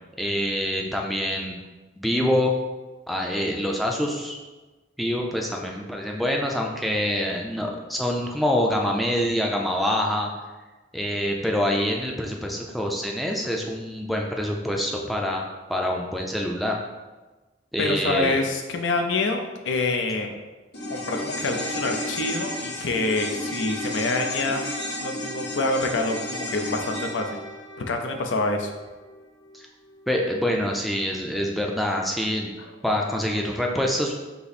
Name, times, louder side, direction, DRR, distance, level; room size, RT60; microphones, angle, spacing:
voice 1, 0.2-1.6 2.0-2.6 3.1-4.4 5.0-10.3 10.9-15.4 15.7-16.8 17.7-18.4 29.5-29.7 30.1-32.5 32.8-34.2, left 1 dB, ahead, 0 dB, 0.4 m, -25 dB
voice 2, 17.8-20.4 20.9-24.6 25.0-27.4 27.9-28.7, left 3 dB, 85° left, 4 dB, 0.6 m, -26 dB
sound 1, 20.7-29.2 29.5-29.6, left 1 dB, 65° left, 1.2 m, -33 dB
5.5 x 2.0 x 4.2 m, 1.2 s
head